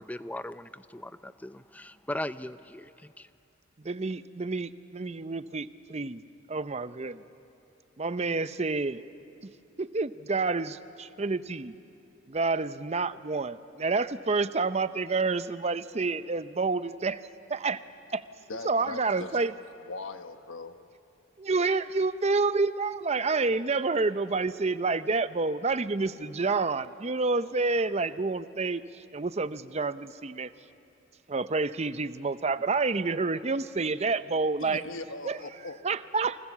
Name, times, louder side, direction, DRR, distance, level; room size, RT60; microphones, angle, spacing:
voice 1, 0.0-3.3, left 1 dB, 10° left, 13 dB, 0.5 m, -38 dB
voice 2, 3.8-6.2 6.5-7.2 8.0-9.0 9.4-9.5 9.8-11.7 12.3-17.2 17.5-17.8 18.1-18.2 18.6-19.5 21.4-28.8 29.1-30.5 31.3-34.8 35.3-35.4 35.8-36.4, right 3 dB, 35° right, 13 dB, 0.6 m, -28 dB
voice 3, 18.5-19.4 19.9-20.8 34.6-35.8, left 3 dB, 75° left, 8 dB, 1.3 m, -40 dB
28.5 x 24.5 x 7.3 m, 2.8 s
head